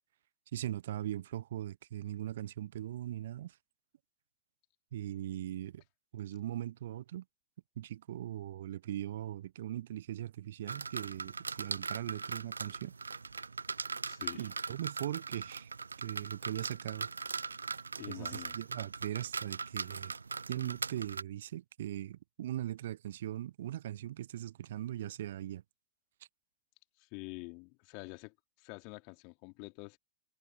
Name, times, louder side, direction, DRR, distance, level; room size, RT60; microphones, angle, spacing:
voice 1, 0.5-3.6 4.9-5.8 6.1-7.2 7.8-12.9 14.4-15.7 16.0-17.1 18.1-20.1 20.5-25.6, right 12 dB, 60° right, 1.2 m, -40 dB
sound 1, 10.7-21.2, right 4 dB, 75° right, 0.5 m, -40 dB
voice 2, 14.1-14.5 18.0-18.6 27.0-30.0, left 37 dB, 45° left, 3.2 m, -47 dB
figure-of-eight pair, 90°, 0 cm